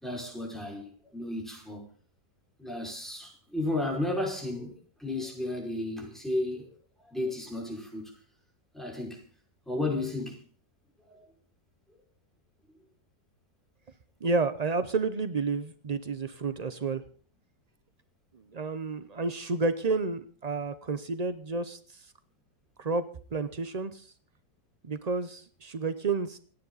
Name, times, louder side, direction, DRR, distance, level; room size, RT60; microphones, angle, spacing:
voice 1, 0.0-1.8 2.6-6.7 7.0-8.1 8.7-9.2 9.7-10.4 11.0-11.3, left 2 dB, ahead, 5.3 m, -33 dB
voice 2, 14.2-17.0 18.3-22.1 22.8-24.1 24.8-26.4, right 4 dB, 70° right, 0.3 m, -31 dB
28.0 x 9.8 x 4.0 m
omnidirectional pair, 1.9 m